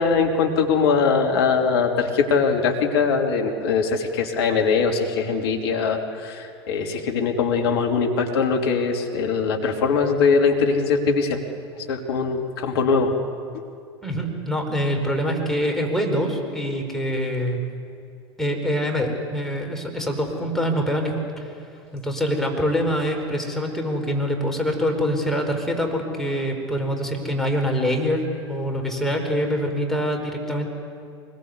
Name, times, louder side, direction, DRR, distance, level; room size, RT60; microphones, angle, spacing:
voice 1, 0.0-11.4 11.9-13.1, left 5 dB, 65° left, 2 dB, 3.1 m, -21 dB
voice 2, 14.0-17.6 18.4-21.5 21.9-28.2 28.5-30.8, equal, 5° left, 1 dB, 5.2 m, -25 dB
24.0 x 21.0 x 8.2 m, 2.4 s
figure-of-eight pair, 80°, 14 cm